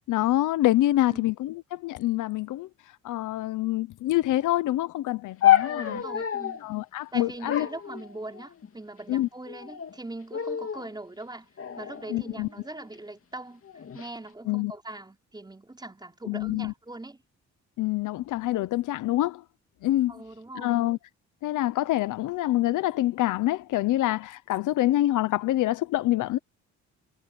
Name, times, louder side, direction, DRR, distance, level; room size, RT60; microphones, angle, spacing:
voice 1, 0.1-2.7 3.0-6.0 6.6-7.7 9.1-9.3 12.1-12.5 14.5-14.7 16.3-16.7 17.8-19.4 19.8-20.1 20.6-21.0 21.4-26.4, left 15 dB, 80° left, 1.0 m, -26 dB
sound 1, 5.4-6.7 7.5-8.7 9.5-10.0 10.3-10.9 11.6-12.9 13.6-14.1, left 11 dB, 45° left, 2.6 m, -28 dB
voice 2, 5.6-6.6 7.1-11.5 11.8-17.2 20.1-20.8, right 2 dB, 15° right, 5.2 m, -41 dB
cardioid pair, 90°, 30 cm